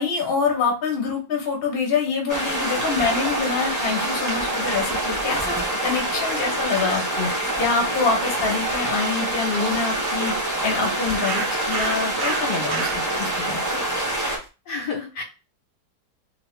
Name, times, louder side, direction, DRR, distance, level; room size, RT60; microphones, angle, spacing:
voice 1, 0.0-5.6 5.8-7.3 7.6-10.3 10.6-13.6, left 5 dB, 40° left, 0 dB, 0.9 m, -25 dB
sound 1, 2.3-14.4, right 1 dB, 30° right, 0.3 m, -26 dB
sound 2, 2.5-14.5, right 6 dB, 70° right, 1.0 m, -38 dB
voice 2, 14.7-15.2, left 4 dB, 70° left, -1 dB, 1.2 m, -31 dB
3.0 x 2.5 x 3.1 m, 0.31 s
omnidirectional pair, 2.0 m